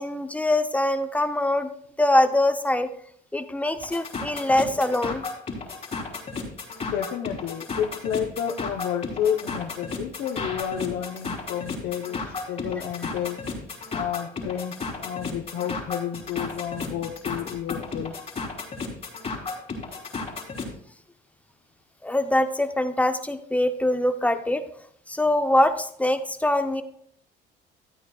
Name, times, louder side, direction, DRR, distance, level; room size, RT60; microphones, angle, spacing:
voice 1, 0.0-1.7 2.0-2.9 3.3-5.2 22.0-24.6 25.1-26.8, left 1 dB, 10° left, 8 dB, 0.8 m, -23 dB
sound 1, 3.8-20.7, left 4 dB, 40° left, 3.3 m, -34 dB
voice 2, 6.8-13.4 13.9-18.1, left 9 dB, 75° left, 0 dB, 1.0 m, -30 dB
13.0 x 9.2 x 2.4 m, 0.62 s
cardioid pair, 110°, 17 cm